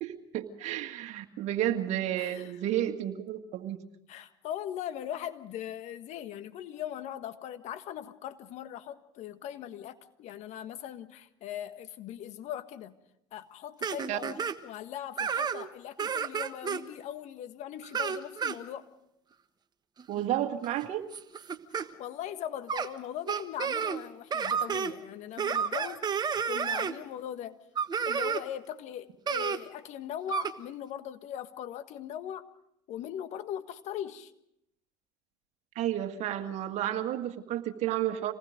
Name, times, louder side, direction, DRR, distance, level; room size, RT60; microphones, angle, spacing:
voice 1, 0.0-3.8 14.1-14.2 20.1-21.0 35.8-38.3, right 12 dB, 55° right, 6 dB, 1.9 m, -31 dB
voice 2, 2.2-2.5 4.1-12.9 13.3-18.9 21.7-27.6 28.0-32.5 32.9-34.3, left 10 dB, 55° left, 10 dB, 1.5 m, -40 dB
sound 1, 13.8-14.5 15.2-15.7 16.0-16.8 17.8-18.6 20.0-20.2 20.6-21.9 22.7-22.9 23.3-24.0 24.3-24.9 25.4-26.9 27.8-28.4 29.3-29.6 30.3-30.5, right 7 dB, 30° right, 1.4 m, -31 dB
27.0 x 19.5 x 5.1 m, 0.78 s
hypercardioid pair, 80°, 14 cm